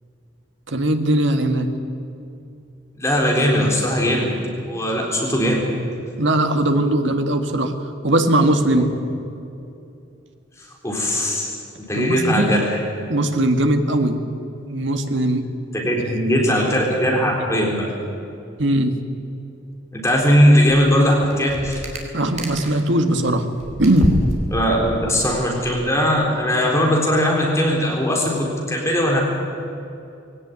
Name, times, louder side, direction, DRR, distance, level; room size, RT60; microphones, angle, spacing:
voice 1, 0.7-1.7 6.2-7.7 8.0-8.9 11.9-12.5 13.1-14.2 14.6-15.5 15.9-16.4 18.6-19.0 22.1-23.5 23.8-24.2, right 1 dB, 70° right, 6 dB, 1.9 m, -19 dB
voice 2, 3.0-4.3 4.7-5.6 8.8-8.9 10.8-11.5 11.9-12.8 15.7-17.9 19.9-21.8 24.5-29.2, equal, 15° left, -2 dB, 3.8 m, -19 dB
sound 1, 20.7-20.9 21.2-22.9 23.2-25.9, equal, 35° right, 3.3 m, -28 dB
20.5 x 17.5 x 9.7 m, 2.6 s
head